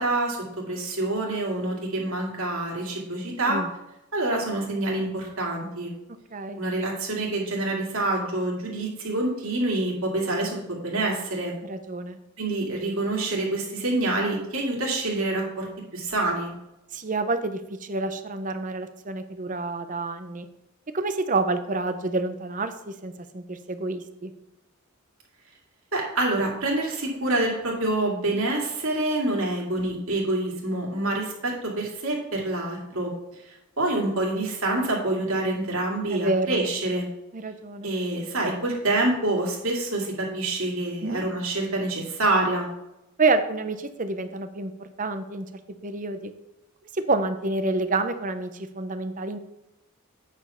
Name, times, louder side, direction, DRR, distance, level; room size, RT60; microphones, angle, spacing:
voice 1, 0.0-3.6 4.1-5.9 6.6-11.5 12.4-15.7 15.9-16.5 25.9-33.1 33.8-37.1 37.8-42.7, right 2 dB, 70° right, -1 dB, 2.4 m, -26 dB
voice 2, 6.3-6.6 11.6-12.2 16.9-20.5 20.9-24.3 36.1-36.6 37.3-37.9 41.0-41.2 43.2-45.5 45.8-46.3 46.9-49.4, right 3 dB, 35° right, 10 dB, 0.7 m, -28 dB
8.8 x 5.0 x 5.6 m, 0.90 s
head